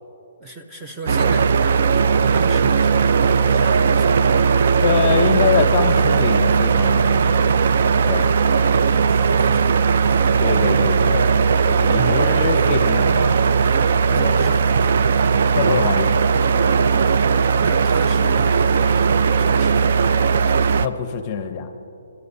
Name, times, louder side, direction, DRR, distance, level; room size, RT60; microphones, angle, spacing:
voice 1, 0.4-4.4 8.9-10.3 14.1-15.0 17.6-19.1 19.4-20.2, right 2 dB, 10° right, 2 dB, 0.8 m, -34 dB
sound 1, 1.1-20.9, right 5 dB, 55° right, 0.4 m, -17 dB
voice 2, 4.8-7.4 8.0-8.3 10.4-11.3 11.7-13.8 15.5-16.1 20.8-21.7, left 7 dB, 30° left, 8 dB, 0.8 m, -24 dB
30.0 x 13.0 x 2.7 m, 2.8 s
hypercardioid pair, 160°, 0 cm